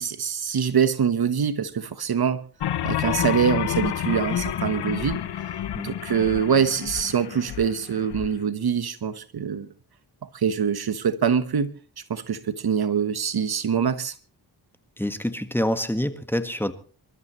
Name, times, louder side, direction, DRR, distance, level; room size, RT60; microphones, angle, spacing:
voice 1, 0.0-2.4 2.8-5.2 5.8-9.7 10.3-11.7 12.1-14.1, right 7 dB, 60° right, 1.3 m, -24 dB
sound 1, 2.6-8.3, left 11 dB, 75° left, 0.9 m, -29 dB
Keyboard (musical), 3.0-5.5, left 10 dB, 10° right, 7.2 m, -36 dB
voice 2, 15.0-16.7, equal, 5° left, 1.6 m, -26 dB
27.0 x 13.5 x 3.1 m
cardioid pair, 70°, 41 cm